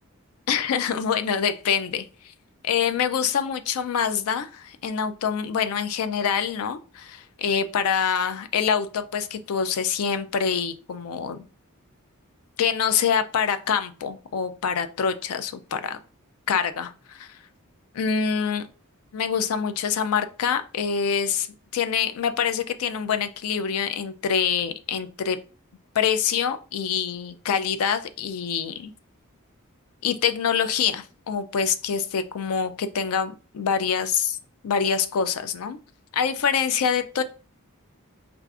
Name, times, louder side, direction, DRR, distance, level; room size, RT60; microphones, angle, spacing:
voice 1, 0.5-2.1 2.6-11.4 12.6-16.0 16.5-17.4 17.9-18.7 19.1-21.5 21.7-25.4 25.9-28.9 30.0-34.4 34.6-35.8 36.1-37.2, left 7 dB, 80° left, 10 dB, 0.4 m, -25 dB
4.5 x 2.5 x 2.4 m, 0.35 s
head